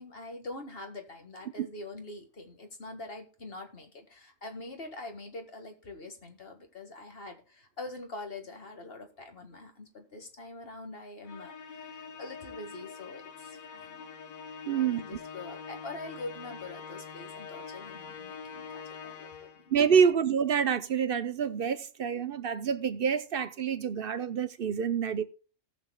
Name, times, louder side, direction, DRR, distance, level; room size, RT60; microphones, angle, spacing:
voice 1, 0.0-14.1 14.8-19.7 20.0-20.1, left 2 dB, 45° left, 1.9 m, -44 dB
Musical instrument, 11.2-19.7, left 6 dB, 85° left, 1.6 m, -44 dB
voice 2, 14.7-15.0 19.7-25.2, right 7 dB, 55° right, 0.8 m, -27 dB
18.5 x 7.1 x 2.2 m
omnidirectional pair, 1.4 m